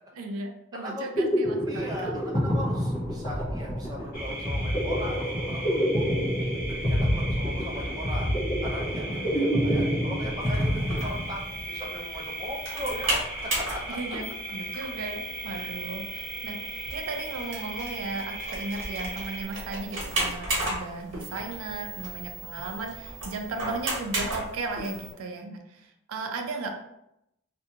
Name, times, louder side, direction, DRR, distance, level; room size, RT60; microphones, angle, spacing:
voice 1, 0.2-2.2 13.9-14.2 14.5-26.7, right 3 dB, 80° right, 4 dB, 0.4 m, -36 dB
voice 2, 0.7-1.1 1.7-6.1 6.7-11.4 11.7-14.0 15.5-15.7, equal, 20° right, -3 dB, 0.4 m, -38 dB
sound 1, 0.9-11.7, equal, 25° left, 0.6 m, -27 dB
sound 2, 4.1-19.4, right 1 dB, 40° left, 1.2 m, -38 dB
sound 3, 10.4-25.1, right 2 dB, 60° right, 1.0 m, -35 dB
2.5 x 2.3 x 2.8 m, 0.83 s
head